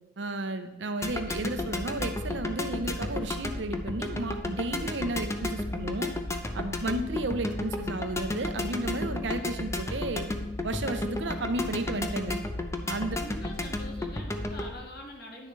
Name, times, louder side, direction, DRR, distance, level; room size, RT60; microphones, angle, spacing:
voice 1, 0.2-6.1 6.5-10.3 10.6-12.4 12.9-13.2, right 2 dB, 70° right, 9 dB, 0.7 m, -33 dB
sound 1, 1.0-14.7, left 1 dB, 15° left, 0.6 m, -33 dB
voice 2, 13.1-15.5, left 1 dB, 60° left, 1 dB, 1.5 m, -44 dB
10.0 x 6.7 x 3.2 m, 1.1 s
head